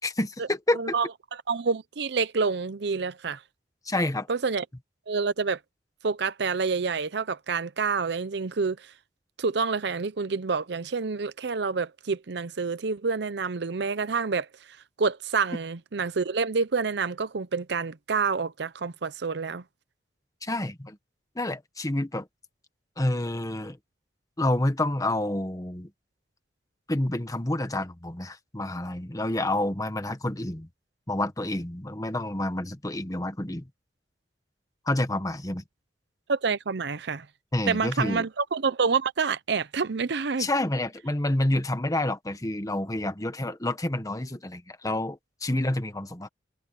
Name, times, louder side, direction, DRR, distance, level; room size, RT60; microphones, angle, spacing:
voice 1, 0.0-0.8 3.8-4.3 20.4-21.0 21.3-22.3 23.0-23.8 24.4-25.9 26.9-30.7 31.1-33.7 34.9-35.6 37.5-38.2 40.4-46.3, left 1 dB, 20° left, 1.4 m, -28 dB
voice 2, 0.7-1.1 1.5-3.4 4.3-4.6 5.1-5.6 6.0-8.9 9.4-14.5 15.0-19.6 36.3-37.3 37.7-40.5, right 5 dB, 70° right, 0.7 m, -28 dB
head